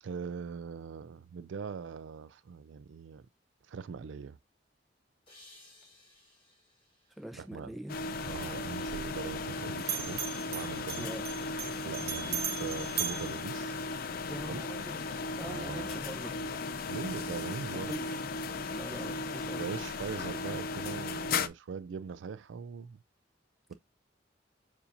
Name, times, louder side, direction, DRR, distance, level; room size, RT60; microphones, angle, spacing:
voice 1, 0.0-3.2 3.7-4.4 7.4-7.8 8.2-11.1 11.8-13.8 14.5-14.6 15.5-15.9 16.9-17.9 19.6-23.0 23.7-23.8, right 5 dB, 90° right, 0.4 m, -41 dB
sound 1, 5.3-8.4, left 2 dB, 30° left, 1.9 m, -60 dB
voice 2, 7.2-8.0 11.0-11.2 14.2-16.4 17.7-18.2 18.6-19.6 23.7-23.8, right 1 dB, ahead, 0.8 m, -43 dB
sound 2, 7.9-21.5, left 3 dB, 55° left, 0.5 m, -36 dB
Bell, 8.2-9.5 9.8-14.3, right 9 dB, 55° right, 0.7 m, -39 dB
6.9 x 2.7 x 2.6 m
head